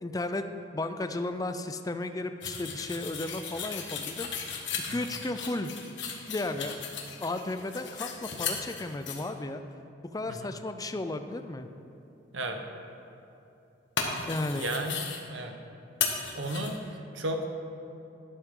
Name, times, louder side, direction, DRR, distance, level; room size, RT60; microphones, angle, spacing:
voice 1, 0.0-0.5 0.7-4.3 4.9-5.7 6.0-6.8 7.2-9.6 10.1-11.7 14.3-14.7, left 2 dB, 20° left, 8 dB, 0.4 m, -34 dB
sound 1, 2.4-9.2 14.0-15.2 16.0-16.8, left 6 dB, 70° left, 1.3 m, -36 dB
voice 2, 14.6-15.5 16.3-17.5, right 1 dB, 85° right, 4 dB, 1.1 m, -34 dB
12.0 x 11.0 x 3.8 m, 2.8 s
head